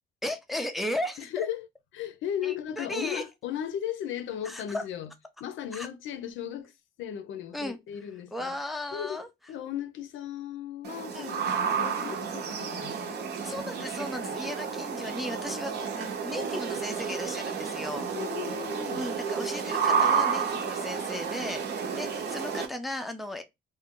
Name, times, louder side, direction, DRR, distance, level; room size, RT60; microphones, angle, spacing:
voice 1, 0.2-1.5 2.4-3.2 4.4-4.8 5.7-5.9 7.5-7.8 8.3-9.3 11.1-11.3 13.4-18.1 18.9-23.4, left 1 dB, ahead, 0.3 m, -36 dB
voice 2, 1.2-1.7 1.9-5.1 5.4-6.7 7.0-8.5 8.9-13.2 18.1-19.0, left 10 dB, 80° left, 0.5 m, -36 dB
sound 1, 10.8-22.7, right 6 dB, 55° right, 0.7 m, -31 dB
2.5 x 2.1 x 3.6 m
cardioid pair, 145°, 20 cm